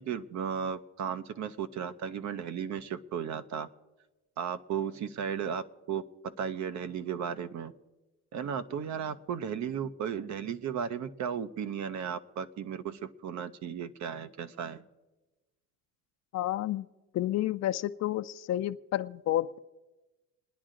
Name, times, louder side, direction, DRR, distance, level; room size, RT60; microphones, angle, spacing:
voice 1, 0.0-3.7 4.4-6.0 6.4-7.7 8.3-14.8, right 8 dB, 55° right, 13 dB, 0.8 m, -35 dB
voice 2, 16.3-16.9 17.1-19.6, left 13 dB, 50° left, 13 dB, 0.5 m, -30 dB
27.5 x 10.0 x 3.8 m, 1.1 s
cardioid pair, 125°, 35 cm